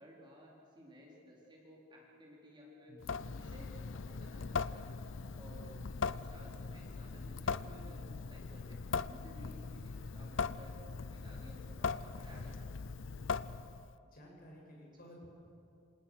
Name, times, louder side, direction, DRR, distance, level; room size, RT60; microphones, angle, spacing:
voice 1, 0.0-3.0 3.3-4.9 5.3-12.7, equal, 25° right, -3 dB, 4.2 m, -57 dB
voice 2, 2.9-3.2 14.0-15.3, equal, 50° left, -2 dB, 7.5 m, -55 dB
Water tap faucet / Sink (filling or washing) / Drip, 3.0-13.9, left 5 dB, 70° left, 0.6 m, -40 dB
27.5 x 27.0 x 6.5 m, 2.6 s
head